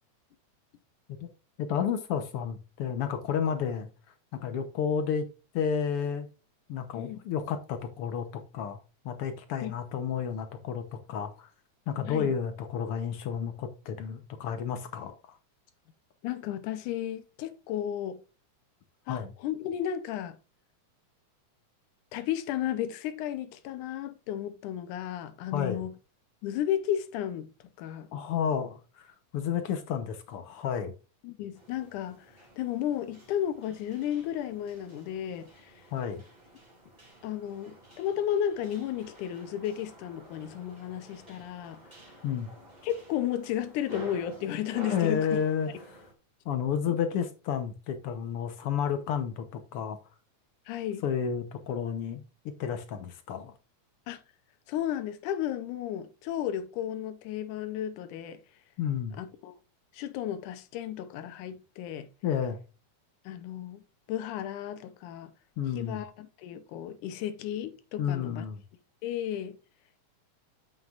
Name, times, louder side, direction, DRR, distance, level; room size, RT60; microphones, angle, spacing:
voice 1, 1.6-3.9 4.3-5.3 5.5-6.3 6.7-8.8 9.0-11.5 11.9-15.4 19.1-19.3 25.5-25.8 28.1-30.9 35.9-36.2 42.2-42.5 44.9-46.0 46.4-50.0 51.0-52.2 52.6-53.5 58.8-59.2 62.2-62.6 65.6-66.0 68.0-68.6, left 7 dB, 65° left, 1.5 m, -31 dB
voice 2, 16.2-18.2 19.1-20.4 22.1-25.9 26.4-27.5 27.8-28.1 31.2-32.2 32.6-35.7 37.2-41.8 42.8-45.3 50.7-51.1 54.1-54.2 54.7-58.4 59.2-59.5 59.9-62.1 63.3-63.8 64.1-65.3 65.7-68.5 69.0-69.6, left 10 dB, 85° left, 2.3 m, -33 dB
sound 1, 31.5-46.1, right 1 dB, 15° right, 2.1 m, -50 dB
8.8 x 7.5 x 2.5 m
omnidirectional pair, 3.5 m